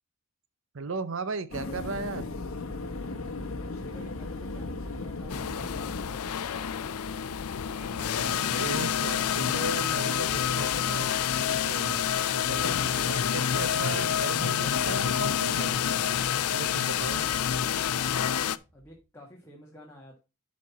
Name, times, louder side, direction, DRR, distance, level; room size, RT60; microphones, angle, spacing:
voice 1, 0.7-2.3 7.8-11.1 11.7-12.1 12.3-15.8 16.5-17.3, right 3 dB, 60° right, 0.6 m, -37 dB
sound 1, 1.5-6.6, left 2 dB, 65° left, 1.0 m, -36 dB
voice 2, 3.6-7.2 17.1-20.2, left 1 dB, 10° left, 1.5 m, -50 dB
sound 2, 5.3-18.6, left 9 dB, 80° left, 0.5 m, -28 dB
sound 3, 18.5-19.0, equal, 45° right, 1.5 m, -53 dB
11.0 x 4.2 x 4.1 m
head